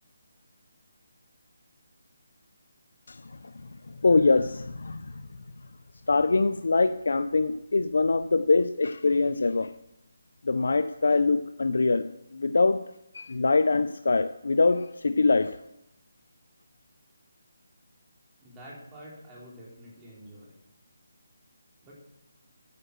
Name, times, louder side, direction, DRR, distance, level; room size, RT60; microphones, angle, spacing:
voice 1, 3.1-3.5 3.9-5.2 6.1-9.7 10.4-12.9 13.1-15.6, left 3 dB, 70° left, 0.5 m, -24 dB
voice 2, 18.4-20.5 21.8-21.9, equal, 15° right, 3.0 m, -47 dB
9.4 x 7.7 x 6.5 m
figure-of-eight pair, 165°, 0 cm